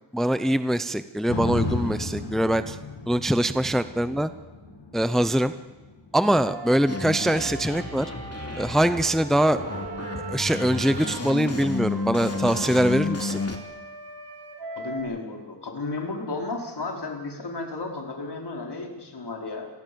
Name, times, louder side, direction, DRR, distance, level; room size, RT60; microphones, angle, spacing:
voice 1, 0.1-2.8 3.1-4.3 4.9-5.5 6.1-8.1 8.6-9.6 10.3-13.4, right 1 dB, ahead, 12 dB, 0.8 m, -23 dB
sound 1, 1.3-9.4 9.9-10.0, left 2 dB, 85° left, 5.9 m, -35 dB
Wind instrument woodwind instrument, 6.3-11.2 11.8-15.0, right 3 dB, 65° right, 5.0 m, -40 dB
sound 2, 6.9-13.6, left 3 dB, 35° left, 3.1 m, -32 dB
voice 2, 14.8-19.7, left 3 dB, 60° left, 1 dB, 4.8 m, -33 dB
26.5 x 18.5 x 7.1 m, 1.2 s
wide cardioid pair, 95°, 45 cm